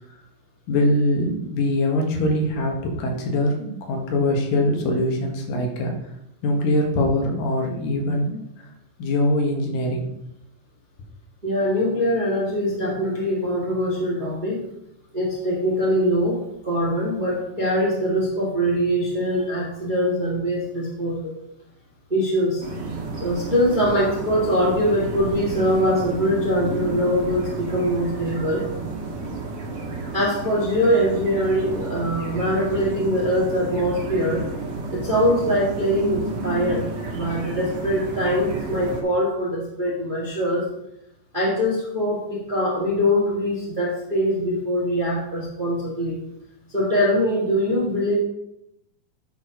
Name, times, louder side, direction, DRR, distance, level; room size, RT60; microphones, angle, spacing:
voice 1, 0.7-5.9 6.4-8.5 9.0-10.1, left 1 dB, 75° left, 1 dB, 3.0 m, -22 dB
voice 2, 11.4-14.6 15.1-21.3 22.1-22.6 23.2-28.6 30.1-34.4 34.9-40.7 41.3-46.2 46.7-48.2, equal, 25° right, -4 dB, 1.2 m, -23 dB
sound 1, 22.6-39.0, right 3 dB, 55° right, 2.8 m, -31 dB
10.5 x 4.5 x 5.2 m, 0.82 s
omnidirectional pair, 4.0 m